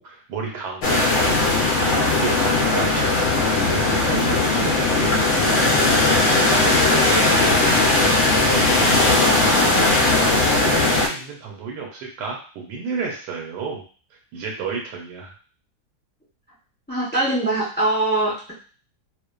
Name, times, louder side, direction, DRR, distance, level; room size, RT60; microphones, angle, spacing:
voice 1, 0.0-1.4 1.9-9.2 9.7-13.8 14.3-15.3, right 4 dB, 90° right, 0 dB, 1.2 m, -32 dB
sound 1, 0.8-11.1, left 2 dB, 75° left, 0.6 m, -18 dB
voice 2, 16.9-18.5, right 2 dB, 15° left, -8 dB, 0.3 m, -22 dB
2.4 x 2.4 x 2.2 m, 0.39 s
omnidirectional pair, 1.8 m